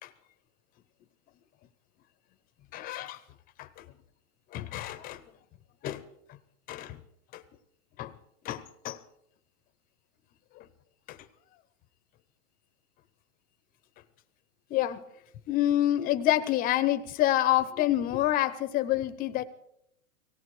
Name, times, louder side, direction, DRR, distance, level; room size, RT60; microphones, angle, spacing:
voice 1, 2.7-3.2 3.6-3.8 4.5-5.2 5.8-6.0 6.7-7.0 7.3-7.4 8.0-8.1 8.4-9.0 10.6-10.7 11.1-11.2 14.7-15.0 15.5-19.4, left 13 dB, 20° left, 13 dB, 0.7 m, -28 dB
18.5 x 17.0 x 4.7 m, 0.75 s
hypercardioid pair, 135°, 43 cm